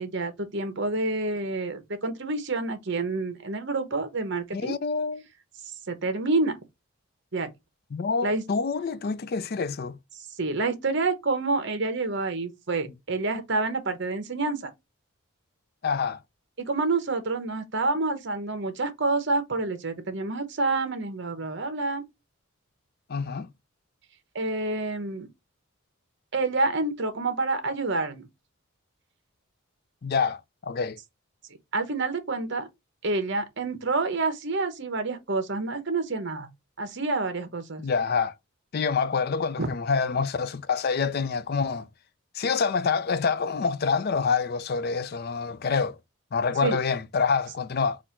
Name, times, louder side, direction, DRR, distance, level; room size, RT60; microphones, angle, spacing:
voice 1, 0.0-4.8 5.6-6.6 7.3-7.5 8.2-8.4 10.4-14.7 16.6-22.0 24.3-25.3 26.3-28.3 31.7-32.7 33.0-36.5 36.8-37.8 39.6-39.7 46.6-46.8, right 3 dB, 55° right, 0.9 m, -28 dB
voice 2, 4.5-5.2 7.9-10.0 15.8-16.2 23.1-23.5 30.0-31.0 37.8-38.3 38.7-41.9 42.3-46.0 46.3-48.0, left 5 dB, 45° left, 0.4 m, -26 dB
4.2 x 2.5 x 4.4 m
head